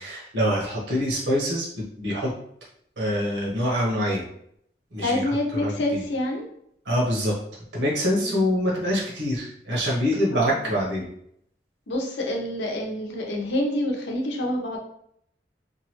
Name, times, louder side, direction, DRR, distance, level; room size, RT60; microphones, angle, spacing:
voice 1, 0.0-2.3 3.0-4.3 4.9-5.2 5.5-6.0 6.8-7.4 7.7-11.1, equal, 85° right, -3 dB, 1.1 m, -25 dB
voice 2, 5.0-6.5 8.2-8.5 10.3-10.5 11.9-14.8, left 1 dB, 85° left, 0 dB, 0.7 m, -27 dB
2.9 x 2.3 x 3.0 m, 0.70 s
head